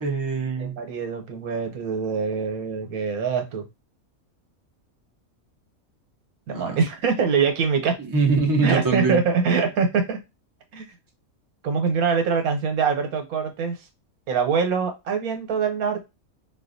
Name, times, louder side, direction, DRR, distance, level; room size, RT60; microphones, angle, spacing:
voice 1, 0.0-0.7 6.5-6.8 8.1-9.2, right 4 dB, 20° right, 0 dB, 0.6 m, -23 dB
voice 2, 0.6-3.6 6.5-8.0 8.6-10.2 10.7-10.8 11.6-13.8 14.3-16.0, right 5 dB, 85° right, 5 dB, 1.3 m, -24 dB
4.2 x 2.3 x 2.5 m, 0.23 s
omnidirectional pair, 1.5 m